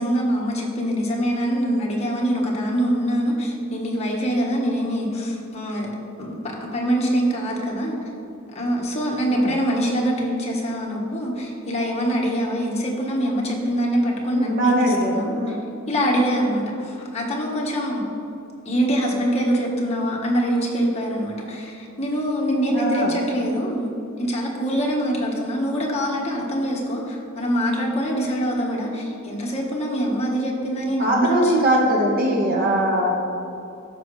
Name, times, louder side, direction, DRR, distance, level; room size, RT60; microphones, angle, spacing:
voice 1, 0.0-5.9 6.2-6.3 6.6-8.0 8.5-15.5 15.9-18.0 18.6-23.9 24.2-31.8, equal, 30° left, -3 dB, 1.3 m, -24 dB
voice 2, 14.3-15.6 22.7-23.1 31.0-33.1, equal, 45° right, -2 dB, 1.4 m, -21 dB
13.0 x 5.1 x 3.2 m, 2.6 s
head